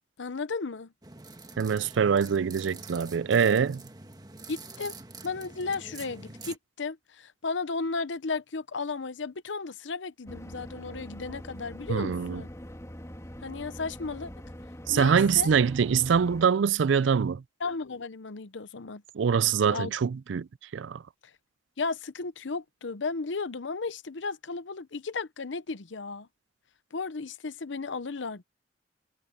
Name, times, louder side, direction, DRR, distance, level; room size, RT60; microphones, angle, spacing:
voice 1, 0.2-0.9 4.5-4.9 5.2-12.5 13.4-14.3 14.9-15.5 17.6-19.0 19.6-19.9 21.8-26.3 26.9-28.4, left 4 dB, 75° left, 0.8 m, -34 dB
sound 1, 1.0-6.6, right 3 dB, 20° right, 1.4 m, -45 dB
voice 2, 1.6-3.8 11.9-12.4 14.9-17.4 19.1-20.5 20.7-21.0, right 6 dB, 75° right, 0.4 m, -24 dB
sound 2, 10.2-16.5, equal, 15° left, 3.2 m, -43 dB
head